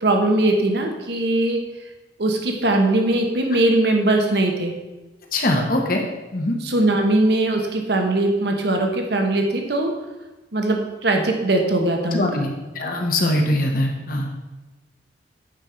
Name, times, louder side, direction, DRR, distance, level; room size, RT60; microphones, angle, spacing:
voice 1, 0.0-1.6 2.2-4.7 6.6-9.9 10.5-12.4, right 2 dB, 60° right, 3 dB, 1.2 m, -20 dB
voice 2, 5.3-6.0 6.3-6.6 12.1-14.3, left 1 dB, 50° left, 1 dB, 1.3 m, -22 dB
8.9 x 5.5 x 4.4 m, 1.1 s
head